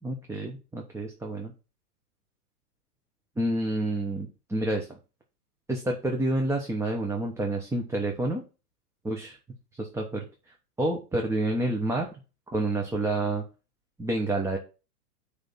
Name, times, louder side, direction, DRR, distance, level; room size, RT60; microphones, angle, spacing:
voice 1, 0.0-1.5 3.4-5.0 5.7-8.4 9.0-9.4 9.7-12.2 12.5-13.4 14.0-14.6, right 1 dB, 5° right, 1 dB, 1.1 m, -29 dB
9.1 x 3.6 x 5.4 m, 0.31 s
hypercardioid pair, 120°, 47 cm